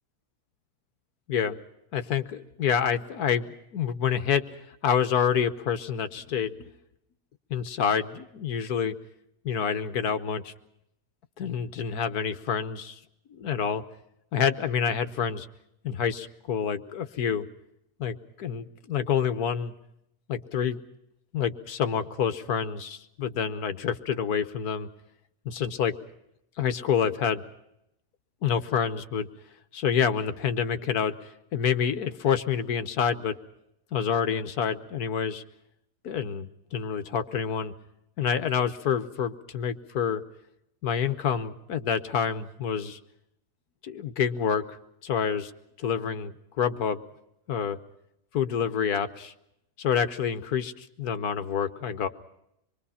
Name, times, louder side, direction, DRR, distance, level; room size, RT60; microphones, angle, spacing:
voice 1, 1.9-4.4 4.8-6.7 7.5-8.9 9.4-10.5 11.4-13.0 13.3-13.8 14.3-15.5 15.8-17.5 18.0-19.7 20.3-20.8 21.3-24.9 25.4-26.0 26.6-27.4 28.4-29.3 29.7-33.4 33.9-35.4 36.0-37.7 38.2-40.2 40.8-43.0 43.8-44.6 45.0-45.5 45.8-47.0 47.5-47.8 48.3-49.3 49.8-52.1, left 7 dB, 80° left, 10 dB, 1.6 m, -27 dB
26.0 x 22.5 x 5.7 m, 0.80 s
omnidirectional pair, 1.6 m